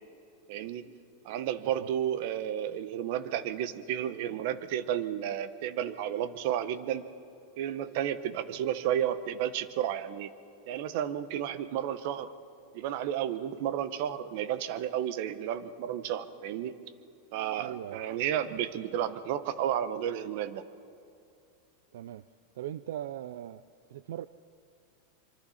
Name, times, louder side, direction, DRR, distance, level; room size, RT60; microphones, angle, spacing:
voice 1, 0.5-0.9 1.2-7.1 7.6-10.3 10.7-12.3 12.7-16.7 17.3-20.6, right 10 dB, 55° right, 13 dB, 1.0 m, -32 dB
voice 2, 17.6-18.0 21.9-22.2 22.6-23.6 23.9-24.3, right 12 dB, 75° right, 15 dB, 0.4 m, -39 dB
25.0 x 24.0 x 4.3 m, 2.6 s
supercardioid pair, 155°, 0 cm